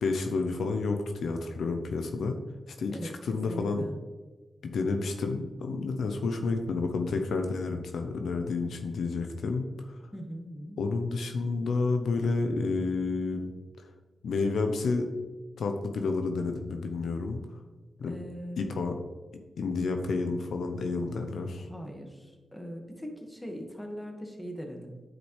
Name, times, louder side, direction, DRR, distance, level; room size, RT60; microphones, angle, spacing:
voice 1, 0.0-2.4 2.8-3.8 4.6-9.7 10.8-13.5 14.2-15.1 15.6-17.4 18.0-18.1 18.6-18.9 19.6-21.7, left 3 dB, 85° left, 5 dB, 0.6 m, -30 dB
voice 2, 2.9-4.0 10.1-10.8 18.1-18.8 21.6-25.0, equal, 10° left, 2 dB, 1.6 m, -40 dB
9.5 x 5.1 x 3.2 m, 1.3 s
cardioid pair, 55°, 0 cm